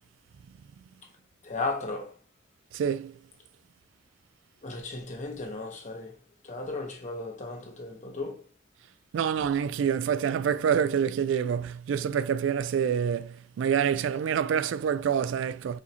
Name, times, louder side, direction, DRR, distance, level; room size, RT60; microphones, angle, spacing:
voice 1, 1.4-2.1 4.6-6.1 6.4-8.4, left 3 dB, 40° left, 1.0 m, -35 dB
voice 2, 2.7-3.1 9.1-15.8, right 8 dB, 90° right, 0.3 m, -27 dB
4.9 x 2.8 x 2.8 m
head